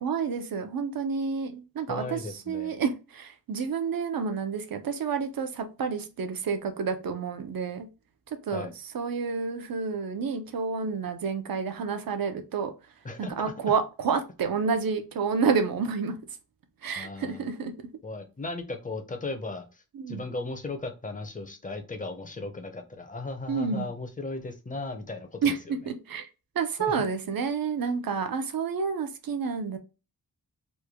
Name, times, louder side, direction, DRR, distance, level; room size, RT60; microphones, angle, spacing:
voice 1, 0.0-2.2 2.5-7.9 8.5-8.7 8.9-12.7 13.2-16.1 16.8-17.7 20.0-20.2 23.5-23.9 25.4-25.6 25.9-26.3 26.6-29.8, right 5 dB, 65° right, 8 dB, 0.6 m, -29 dB
voice 2, 1.9-2.7 8.5-8.7 13.0-13.5 16.9-17.5 18.0-25.7 26.9-27.0, left 3 dB, 20° left, 5 dB, 0.5 m, -36 dB
3.1 x 2.2 x 3.4 m, 0.31 s
wide cardioid pair, 155°, 37 cm